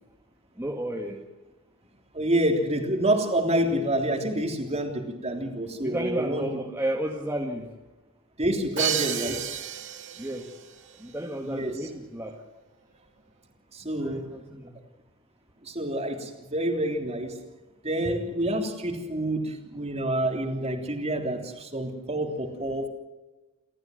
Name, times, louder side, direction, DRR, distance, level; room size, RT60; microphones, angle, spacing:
voice 1, 0.6-1.2 5.8-7.7 10.2-10.5 11.0-12.4 13.8-14.8, right 1 dB, 10° right, 0 dB, 1.9 m, -32 dB
voice 2, 2.1-6.5 8.4-9.5 11.4-11.7 13.7-14.3 15.6-17.4 17.8-22.9, right 1 dB, 30° right, 4 dB, 3.4 m, -28 dB
Crash cymbal, 8.8-10.6, right 9 dB, 60° right, 2.5 m, -30 dB
29.0 x 14.0 x 7.9 m, 1.1 s
head